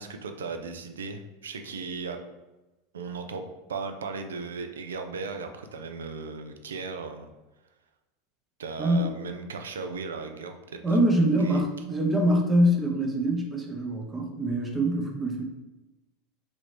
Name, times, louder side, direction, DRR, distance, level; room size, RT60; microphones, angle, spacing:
voice 1, 0.0-2.2 2.9-7.3 8.6-10.5 11.4-11.6, right 4 dB, 80° right, 6 dB, 0.3 m, -36 dB
voice 2, 8.8-9.1 10.8-15.4, right 1 dB, 15° right, 1 dB, 0.7 m, -24 dB
3.0 x 2.5 x 3.3 m, 1.1 s
hypercardioid pair, 90°, 0 cm